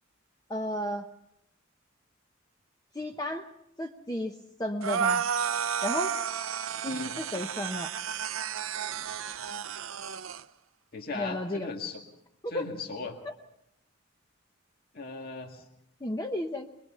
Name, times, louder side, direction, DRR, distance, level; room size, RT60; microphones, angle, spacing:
voice 1, 0.5-1.1 2.9-3.5 3.8-5.2 5.8-6.2 6.8-7.9 11.1-11.7 12.4-12.6 13.2-13.3 16.0-16.7, left 1 dB, 20° left, 3 dB, 0.8 m, -33 dB
sound 1, 4.8-10.4, right 8 dB, 90° right, 0.7 m, -32 dB
voice 2, 10.9-12.0 12.5-13.2 14.9-15.7, left 3 dB, 50° left, 3 dB, 1.9 m, -38 dB
23.0 x 22.0 x 5.6 m, 0.82 s
head